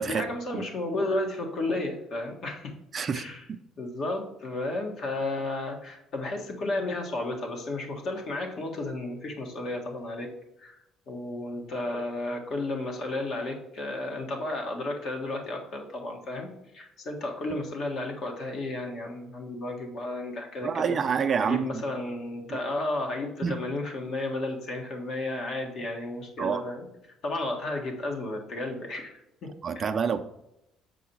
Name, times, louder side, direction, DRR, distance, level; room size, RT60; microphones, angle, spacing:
voice 1, 0.0-2.7 3.1-3.4 3.8-10.3 10.6-10.7 11.1-20.9 21.4-26.9 27.2-29.1 29.4-29.5 29.7-29.9, left 2 dB, 60° left, 1.6 m, -33 dB
voice 2, 2.9-3.2 3.5-3.6 20.6-21.8 22.5-22.6 23.4-23.6 26.4-26.6 29.6-30.2, right 6 dB, 40° right, 0.5 m, -27 dB
6.9 x 4.8 x 4.6 m
cardioid pair, 105°, 0 cm